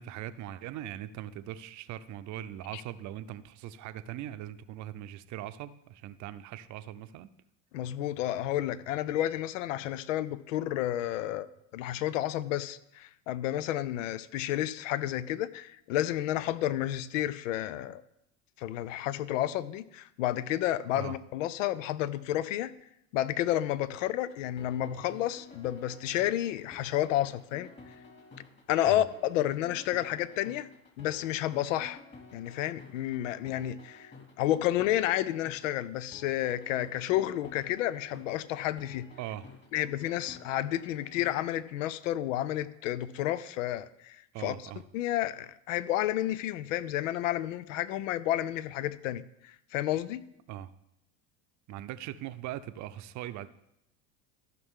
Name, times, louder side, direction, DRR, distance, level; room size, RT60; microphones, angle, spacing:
voice 1, 0.0-7.3 20.9-21.1 28.8-29.1 39.2-39.5 44.3-44.8 50.5-50.7 51.7-53.5, right 12 dB, 50° right, 12 dB, 0.6 m, -40 dB
voice 2, 7.7-18.0 18.6-22.7 23.1-27.7 28.7-30.7 31.0-32.0 32.3-39.1 39.7-50.2, left 13 dB, 90° left, 17 dB, 0.6 m, -31 dB
sound 1, 24.2-41.3, left 3 dB, 30° left, 2.5 m, -52 dB
14.5 x 5.9 x 3.7 m, 0.81 s
supercardioid pair, 100°, 37 cm